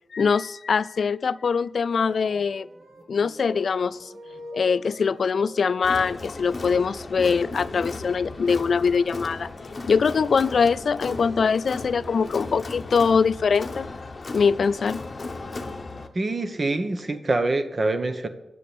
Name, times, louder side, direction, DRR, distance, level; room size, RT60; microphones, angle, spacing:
voice 1, 0.1-2.7 3.1-4.1 4.5-9.5 9.9-13.9 14.3-15.0, left 5 dB, 70° left, 18 dB, 0.3 m, -23 dB
sound 1, 1.9-13.8 15.0-17.2, equal, 70° right, 1.9 m, -46 dB
Crowd, 5.8-16.1, left 3 dB, 40° left, 1.0 m, -36 dB
voice 2, 16.1-18.3, right 2 dB, 40° right, 9 dB, 1.0 m, -25 dB
10.0 x 6.9 x 8.5 m, 0.97 s
wide cardioid pair, 105°, 0 cm